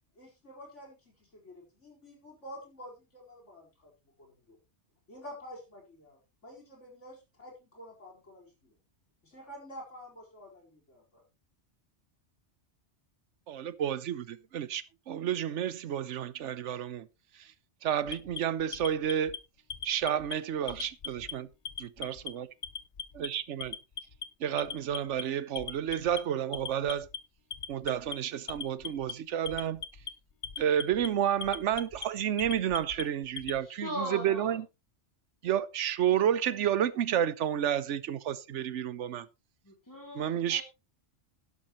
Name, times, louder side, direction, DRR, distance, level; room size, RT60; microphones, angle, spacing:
voice 1, 0.1-3.9 4.2-4.6 5.1-8.7 9.2-11.2, equal, 80° left, 4.8 m, -49 dB
voice 2, 13.5-17.1 17.8-19.3 19.8-21.5 21.8-22.4 23.2-23.7 24.4-27.1 27.7-29.8 30.6-34.6 35.4-39.2 40.1-40.6, right 10 dB, 85° right, 1.1 m, -30 dB
Alarm, 18.1-19.4 19.7-20.3 20.7-21.3 21.7-22.3 22.6-23.3 23.6-24.2 24.6-25.2 25.6-26.2 26.5-27.2 27.5-28.2 28.5-29.1 29.5-30.1 30.4-31.1 31.4-32.1 32.4-33.6, left 7 dB, 50° left, 1.0 m, -39 dB
voice 3, 33.6-34.6 39.7-40.6, equal, 15° left, 2.7 m, -39 dB
11.5 x 11.5 x 3.0 m
omnidirectional pair, 1.2 m